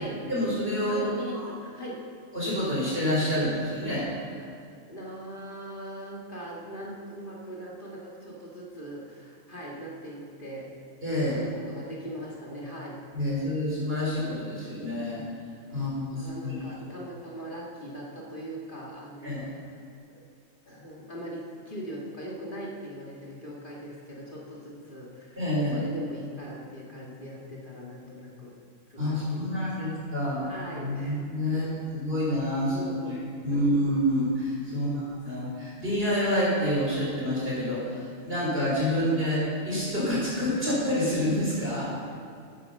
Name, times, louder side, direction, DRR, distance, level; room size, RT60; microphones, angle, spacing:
voice 1, 0.3-1.1 2.3-4.0 11.0-11.4 13.1-15.2 15.7-16.5 19.2-19.5 25.4-25.8 29.0-30.5 30.8-33.1 33.4-41.9, equal, 45° right, -7 dB, 4.2 m, -28 dB
voice 2, 0.9-2.0 4.3-10.7 11.1-13.0 15.7-15.8 16.1-19.5 19.7-19.8 20.1-20.3 20.7-25.4 25.7-28.6 28.9-30.0 30.4-31.2 31.5-31.7 32.7-33.6 34.7-35.0 42.0-42.1, equal, 40° left, -4 dB, 2.2 m, -41 dB
14.0 x 10.0 x 5.4 m, 2.4 s
omnidirectional pair, 1.3 m